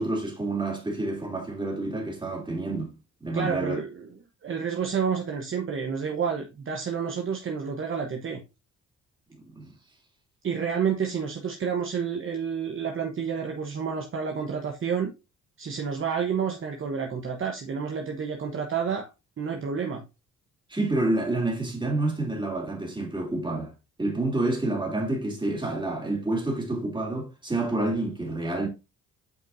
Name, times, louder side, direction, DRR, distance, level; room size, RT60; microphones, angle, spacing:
voice 1, 0.0-2.9 3.2-3.8 9.3-9.7 20.7-23.7 24.0-28.7, right 2 dB, 15° right, 2.8 m, -28 dB
voice 2, 3.3-4.1 4.4-8.4 10.4-15.1 15.6-19.1 19.4-20.0, right 6 dB, 45° right, 1.1 m, -29 dB
8.0 x 5.1 x 2.7 m
cardioid pair, 90°, 30 cm